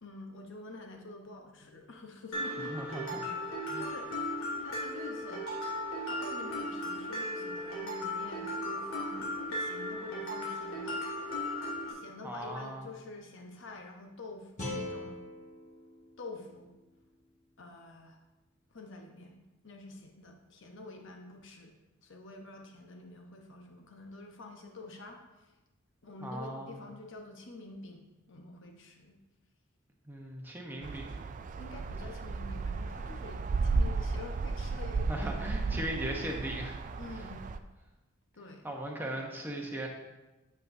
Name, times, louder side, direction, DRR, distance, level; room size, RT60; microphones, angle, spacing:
voice 1, 0.0-3.0 3.8-4.3 4.6-5.7 6.1-11.0 11.8-15.3 16.2-16.7 17.6-18.2 18.7-19.4 19.6-21.7 22.0-25.5 26.0-29.2 31.5-35.9 37.0-37.4 38.3-38.7, left 2 dB, 60° left, 3 dB, 1.0 m, -48 dB
Mallet percussion, 2.3-11.9, left 1 dB, 85° left, 2.0 m, -36 dB
voice 2, 2.6-3.2 3.7-3.9 12.2-12.9 26.2-26.8 30.0-31.2 35.1-36.8 38.6-39.9, right 1 dB, 10° right, 0 dB, 1.0 m, -38 dB
sound 1, 14.6-17.7, left 1 dB, 35° left, 1.4 m, -43 dB
sound 2, 30.8-37.6, right 3 dB, 40° right, 0.3 m, -34 dB
8.5 x 6.8 x 2.7 m, 1.1 s
head